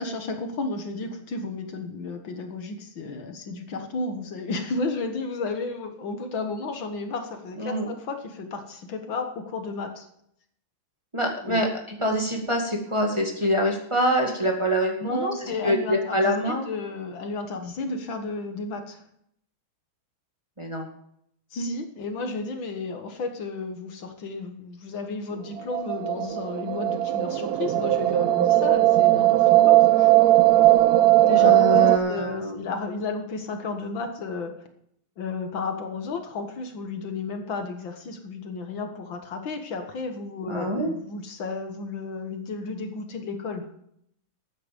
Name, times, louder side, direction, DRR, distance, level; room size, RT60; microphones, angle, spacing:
voice 1, 0.0-10.1 11.4-11.6 15.0-19.0 21.5-30.1 31.2-31.6 32.1-34.6 35.2-43.7, left 3 dB, 65° left, 6 dB, 2.1 m, -33 dB
voice 2, 7.6-7.9 11.1-16.7 20.6-20.8 31.4-32.6 40.4-40.9, equal, 15° right, 1 dB, 1.9 m, -25 dB
sound 1, 25.6-32.0, right 15 dB, 75° right, 0.9 m, -18 dB
14.0 x 9.5 x 5.2 m, 0.70 s
omnidirectional pair, 2.3 m